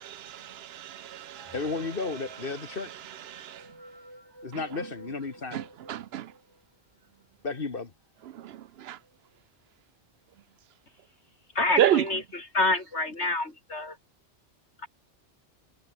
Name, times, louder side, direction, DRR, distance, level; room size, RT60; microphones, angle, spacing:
voice 1, 0.0-1.8 2.5-3.7 4.5-4.6 5.5-6.3 8.3-9.0 11.8-12.0, right 11 dB, 70° right, 0.8 m, -30 dB
sound 1, 1.3-6.7 7.2-7.3 7.5-7.6 8.4-8.5 8.8-9.2, right 1 dB, 20° right, 6.7 m, -50 dB
voice 2, 1.5-2.9 4.4-5.6 7.4-7.9, left 4 dB, 50° left, 1.8 m, -33 dB
voice 3, 11.5-14.0 14.8-14.9, left 2 dB, 75° left, 4.6 m, -28 dB
omnidirectional pair, 1.2 m